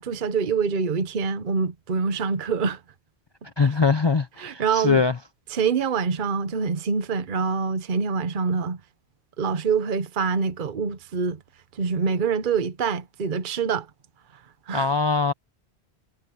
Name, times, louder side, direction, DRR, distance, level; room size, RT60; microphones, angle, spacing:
voice 1, 0.0-2.8 3.6-3.7 4.4-5.0 5.5-8.8 9.4-11.4 11.7-13.9 14.7-14.9, right 5 dB, 50° right, 1.0 m, -25 dB
voice 2, 3.6-5.1 14.7-15.3, left 4 dB, 35° left, 0.4 m, -22 dB
omnidirectional pair, 1.1 m